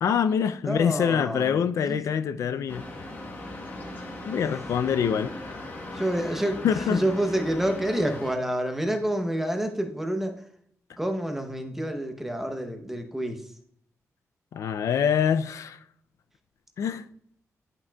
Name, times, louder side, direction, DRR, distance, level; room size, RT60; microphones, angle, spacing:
voice 1, 0.0-2.9 4.2-5.3 6.6-7.0 14.5-15.8 16.8-17.0, left 8 dB, 70° left, 0.4 m, -25 dB
voice 2, 0.6-2.0 4.4-4.6 5.9-10.4 11.0-13.5, right 1 dB, 5° right, 0.8 m, -28 dB
sound 1, 2.7-8.3, left 1 dB, 35° left, 1.2 m, -38 dB
10.5 x 5.9 x 2.3 m
wide cardioid pair, 170°, 6 cm